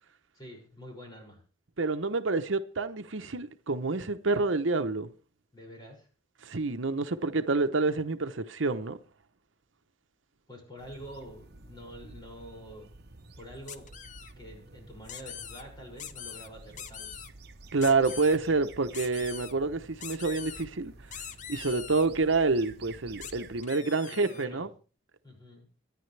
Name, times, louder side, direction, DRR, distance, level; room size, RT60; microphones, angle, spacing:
voice 1, 0.3-1.4 5.5-6.1 10.5-12.9 13.3-13.8 14.4-17.1 24.1-24.7 25.2-25.7, equal, 20° left, 6.3 m, -47 dB
voice 2, 1.8-5.1 6.4-9.0 17.7-21.2 21.5-24.7, right 3 dB, 80° right, 0.9 m, -28 dB
sound 1, 10.8-23.6, right 3 dB, 55° right, 1.1 m, -51 dB
sound 2, 13.7-14.3 15.1-15.6 16.0-16.5 16.8-17.3 17.8-18.4 18.9-19.5 20.0-20.7 21.1-22.1 23.2-23.3 23.6-24.5, left 9 dB, 40° left, 0.7 m, -42 dB
23.5 x 10.0 x 3.4 m
head